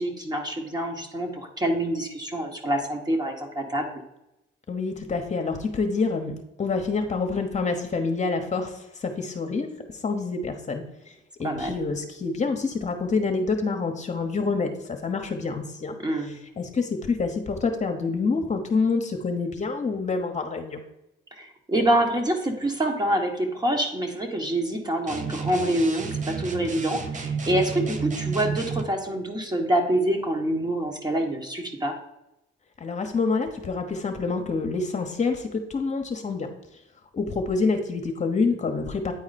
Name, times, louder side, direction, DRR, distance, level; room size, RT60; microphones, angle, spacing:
voice 1, 0.0-3.9 11.4-11.8 16.0-16.4 21.4-32.0, right 1 dB, 20° right, 3 dB, 1.4 m, -26 dB
voice 2, 4.7-9.7 10.0-10.8 11.4-15.9 16.6-20.8 32.8-36.5 37.1-39.1, left 4 dB, 35° left, 4 dB, 1.1 m, -27 dB
sound 1, 25.1-28.9, right 5 dB, 40° right, 0.9 m, -31 dB
9.4 x 4.3 x 4.2 m, 0.90 s
cardioid pair, 90°, 20 cm